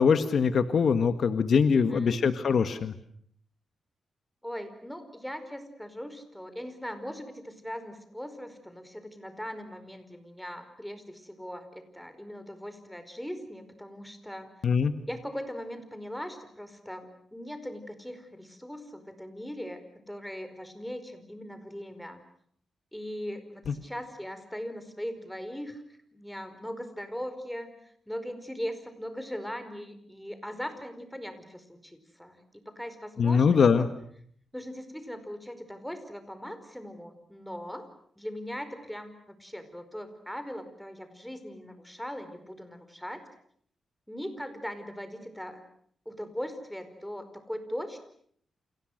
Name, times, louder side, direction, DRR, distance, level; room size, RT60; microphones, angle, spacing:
voice 1, 0.0-2.9 14.6-14.9 33.2-33.9, left 6 dB, 60° left, 10 dB, 1.6 m, -22 dB
voice 2, 1.8-2.2 4.4-14.5 15.1-19.8 20.1-22.2 22.9-25.8 26.1-27.7 28.1-33.6 34.5-37.9 38.2-43.2 44.1-45.6 46.0-48.0, equal, 5° left, 9 dB, 4.8 m, -39 dB
30.0 x 28.5 x 6.6 m, 0.64 s
wide cardioid pair, 120°, 0 cm